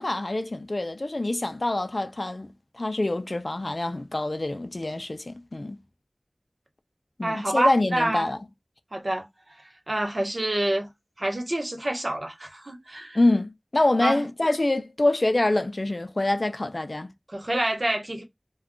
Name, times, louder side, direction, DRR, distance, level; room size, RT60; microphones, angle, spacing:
voice 1, 0.0-5.8 7.2-8.4 13.1-17.1, left 2 dB, 65° left, 0.4 m, -25 dB
voice 2, 7.2-8.3 8.9-9.2 9.9-10.9 11.2-13.2 14.0-14.3 17.3-18.2, right 1 dB, 65° right, 0.9 m, -27 dB
2.3 x 2.3 x 3.6 m
wide cardioid pair, 40°, 0 cm